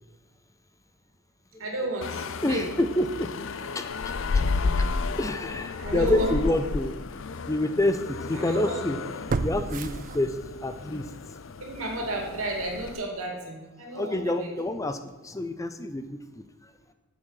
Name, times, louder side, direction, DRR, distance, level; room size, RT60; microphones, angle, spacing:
voice 1, 1.6-2.7 4.4-4.8 5.8-6.3 8.3-8.8 11.6-14.5, right 1 dB, 80° right, 1 dB, 2.4 m, -32 dB
sound 1, 2.0-13.0, left 4 dB, 65° left, 0.5 m, -32 dB
voice 2, 2.4-3.9 4.3-4.4 4.8-6.9 7.5-9.0 9.4-11.1 13.9-16.4, left 1 dB, 15° left, 9 dB, 0.5 m, -28 dB
sound 2, 6.0-6.1 6.7-6.8 9.3-10.7 11.1-11.2, right 3 dB, 40° right, 0.4 m, -31 dB
8.3 x 7.8 x 5.7 m, 1.3 s
head